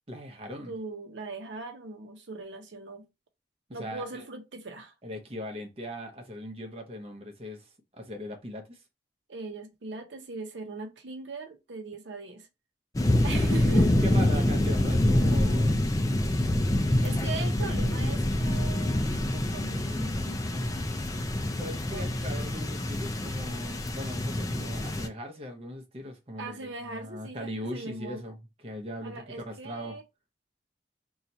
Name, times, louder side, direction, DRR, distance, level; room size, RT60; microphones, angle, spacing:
voice 1, 0.1-0.7 3.8-4.2 5.0-8.8 13.4-13.6 14.0-15.8 21.6-30.0, equal, 30° right, 0.7 m, -40 dB
voice 2, 0.7-3.0 3.7-4.9 9.3-12.5 13.2-13.9 14.3-14.4 16.8-20.9 21.9-22.6 26.4-28.2 29.0-30.0, right 3 dB, 90° right, 0.7 m, -40 dB
sound 1, 12.9-25.1, left 1 dB, 20° left, 0.4 m, -26 dB
2.8 x 2.3 x 4.1 m
head